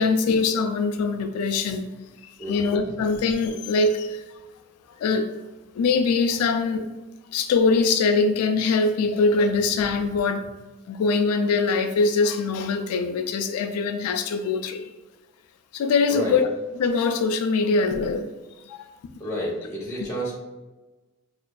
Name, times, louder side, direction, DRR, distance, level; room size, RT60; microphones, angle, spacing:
voice 1, 0.0-1.9 2.5-4.2 5.0-5.3 5.7-6.8 7.3-10.4 10.9-14.8 15.7-16.5 16.7-18.3 18.7-18.9, left 4 dB, 80° left, 7 dB, 0.3 m, -22 dB
voice 2, 19.2-20.3, equal, 10° left, -5 dB, 0.8 m, -30 dB
5.0 x 2.4 x 2.2 m, 1.1 s
head